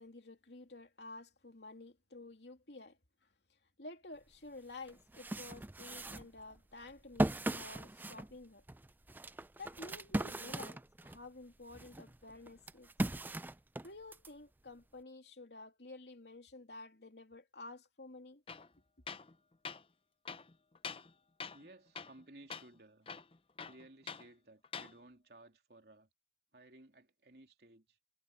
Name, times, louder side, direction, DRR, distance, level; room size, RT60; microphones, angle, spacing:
voice 1, 0.0-3.0 3.8-8.6 9.6-12.9 13.8-18.4, left 2 dB, 75° left, 2.9 m, -51 dB
sound 1, 4.3-4.4 4.9-11.3 11.7-14.3, right 1 dB, 10° right, 0.4 m, -39 dB
Tools, 18.5-18.7 19.1-19.3 19.6-19.8 20.3-21.1 21.4-21.7 22.0-22.2 22.5-22.7 23.1-24.3 24.6-24.9, left 5 dB, 30° left, 0.6 m, -45 dB
voice 2, 21.5-23.1 23.6-26.1 26.5-28.0, right 2 dB, 65° right, 3.2 m, -58 dB
head